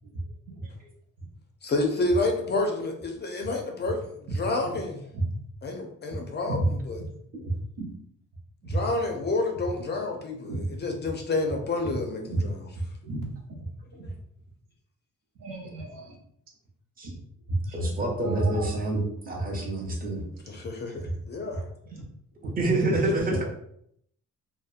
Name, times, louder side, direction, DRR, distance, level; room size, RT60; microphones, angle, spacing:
voice 1, 1.6-5.0 5.6-7.0 8.6-12.7 14.0-14.1 20.5-21.7 23.3-23.4, left 2 dB, 35° left, 3 dB, 0.4 m, -29 dB
voice 2, 7.3-7.9 8.6-8.8 10.5-10.7 11.9-12.4 12.7-13.7 14.0-14.1 15.4-16.2 17.0-17.2 17.5-18.7 19.4-19.5 21.0-21.1 21.9-22.1 22.4-22.5 22.8-23.0, right 2 dB, 80° right, 0 dB, 0.7 m, -31 dB
voice 3, 17.7-20.2 22.4-23.4, right 2 dB, 25° right, -1 dB, 0.6 m, -27 dB
2.7 x 2.0 x 2.4 m, 0.71 s
cardioid pair, 130°, 32 cm